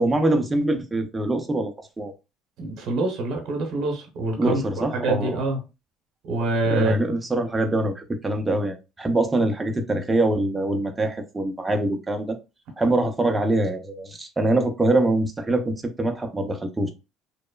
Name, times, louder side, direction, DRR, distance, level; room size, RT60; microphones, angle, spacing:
voice 1, 0.0-2.1 4.4-5.4 6.6-12.4 12.8-16.9, right 2 dB, 15° right, 0.4 m, -24 dB
voice 2, 2.6-5.6 6.2-6.9, right 2 dB, 65° right, 0.9 m, -26 dB
2.9 x 2.1 x 2.2 m
cardioid pair, 120°, 0 cm